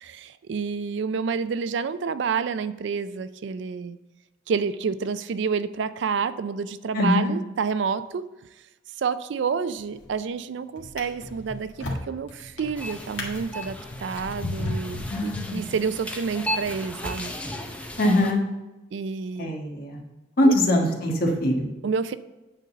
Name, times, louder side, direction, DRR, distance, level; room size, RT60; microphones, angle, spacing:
voice 1, 0.0-4.0 4.5-8.3 9.0-17.3 18.9-19.5 20.4-20.5 21.8-22.2, right 5 dB, 60° right, 14 dB, 0.4 m, -29 dB
voice 2, 6.9-7.3 15.1-15.7 18.0-18.4 19.4-20.0 20.4-21.7, left 1 dB, 50° left, 0 dB, 1.4 m, -22 dB
Drawer open or close, 9.8-10.2 10.8-16.0 16.7-16.8, left 2 dB, 70° left, 1.7 m, -35 dB
sound 1, 12.8-18.3, equal, 5° left, 0.7 m, -35 dB
9.2 x 3.9 x 6.7 m, 1.0 s
head